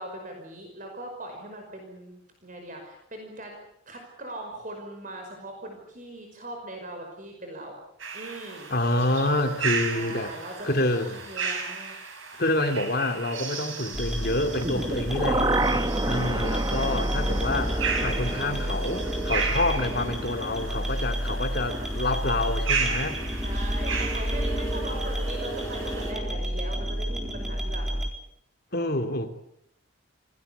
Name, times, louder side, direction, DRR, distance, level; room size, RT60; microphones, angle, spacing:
voice 1, 0.0-3.6 3.9-7.8 8.1-8.7 9.9-12.0 15.1-17.2 21.3-21.8 23.4-28.0 28.8-29.2, right 1 dB, 40° right, 5.4 m, -40 dB
sound 1, 8.0-26.1, right 5 dB, 70° right, 7.5 m, -35 dB
voice 2, 8.7-10.3 10.6-11.2 12.4-15.5 16.1-23.2 28.7-29.3, left 2 dB, 45° left, 2.9 m, -27 dB
sound 2, 13.9-28.1, equal, ahead, 4.1 m, -30 dB
sound 3, 14.6-20.6 20.9-21.0, right 2 dB, 20° right, 1.2 m, -30 dB
27.5 x 20.0 x 8.3 m
head